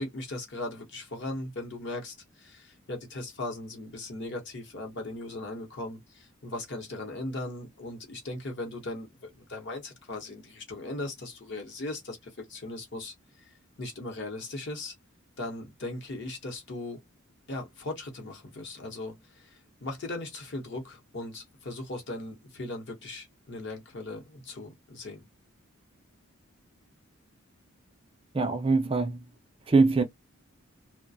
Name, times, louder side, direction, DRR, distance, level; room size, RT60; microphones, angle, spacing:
voice 1, 0.0-14.9 15.4-17.0 17.5-25.3, left 2 dB, 55° left, 0.9 m, -38 dB
voice 2, 28.3-29.2 29.7-30.0, right 3 dB, 25° right, 0.4 m, -23 dB
2.4 x 2.1 x 2.6 m
head